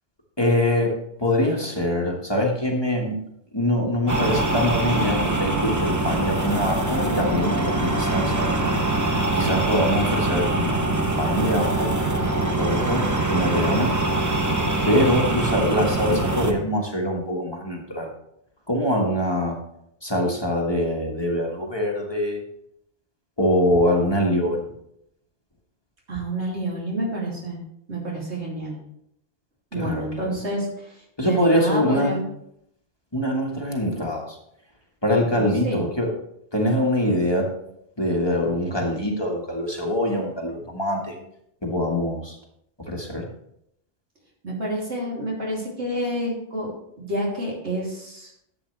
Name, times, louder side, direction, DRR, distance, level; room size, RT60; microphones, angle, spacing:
voice 1, 0.4-3.2 3.5-8.6 8.9-11.9 12.5-14.0 14.8-18.1 18.7-19.6 20.0-22.4 23.4-24.7 29.7-30.3 31.2-32.2 33.1-34.4 35.0-36.1 36.5-37.5 38.0-41.2 41.6-42.4 42.9-43.3, left 1 dB, 25° left, -1 dB, 1.6 m, -24 dB
sound 1, 4.1-16.5, right 2 dB, 20° right, 0.9 m, -23 dB
voice 2, 26.1-27.6 27.9-28.8 29.7-32.2 35.3-35.9 44.4-48.3, right 1 dB, 85° right, -4 dB, 3.2 m, -29 dB
11.5 x 7.8 x 3.3 m, 0.76 s
omnidirectional pair, 1.1 m